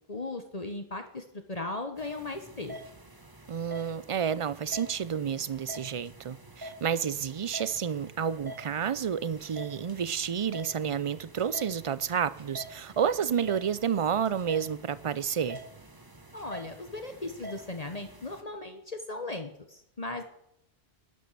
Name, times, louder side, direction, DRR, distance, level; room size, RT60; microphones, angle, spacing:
voice 1, 0.1-2.8 16.3-20.2, left 2 dB, 40° left, 1.3 m, -37 dB
sound 1, 2.0-18.4, equal, 20° right, 1.2 m, -47 dB
voice 2, 3.5-15.6, right 7 dB, 40° right, 0.5 m, -30 dB
12.0 x 10.5 x 6.8 m
omnidirectional pair, 1.0 m